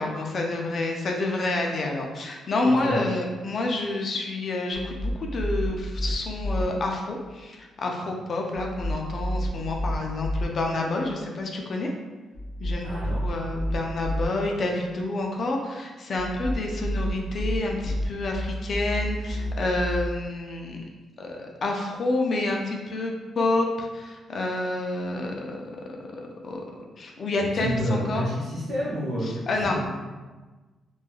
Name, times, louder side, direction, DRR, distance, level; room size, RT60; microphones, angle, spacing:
voice 1, 0.0-11.9 12.6-20.8 21.2-25.6 26.1-26.6 27.0-28.2 29.5-29.8, left 2 dB, 40° left, 1 dB, 0.4 m, -28 dB
voice 2, 2.6-3.1 12.8-13.2 27.4-29.8, equal, 60° right, -10 dB, 0.6 m, -30 dB
sound 1, 4.7-6.6 8.5-10.5 12.3-14.3 16.2-20.0, equal, 20° left, 1.0 m, -30 dB
3.0 x 2.3 x 2.3 m, 1.3 s
cardioid pair, 160°, 0 cm